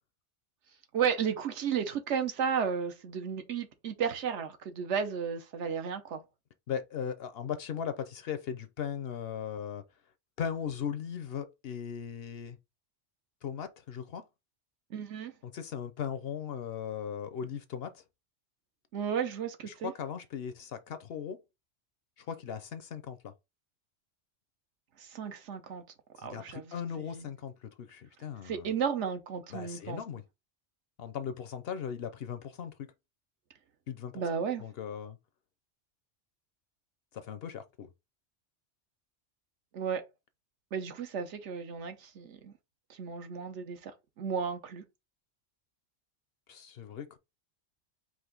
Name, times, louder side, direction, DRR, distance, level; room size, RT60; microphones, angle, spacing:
voice 1, 0.9-6.2 14.9-15.3 18.9-19.9 25.0-25.8 26.2-27.3 28.4-30.0 34.1-34.6 39.7-40.0 40.7-42.5 42.9-43.9 44.2-44.8, right 7 dB, 75° right, 1.1 m, -33 dB
voice 2, 6.7-9.8 10.4-12.6 13.4-14.2 15.4-18.0 19.6-21.4 22.2-23.3 26.2-28.7 29.5-30.2 31.0-32.7 33.9-34.2 34.6-35.2 37.1-37.9 46.5-47.2, left 8 dB, 60° left, 0.7 m, -38 dB
4.8 x 2.5 x 3.8 m
omnidirectional pair, 1.2 m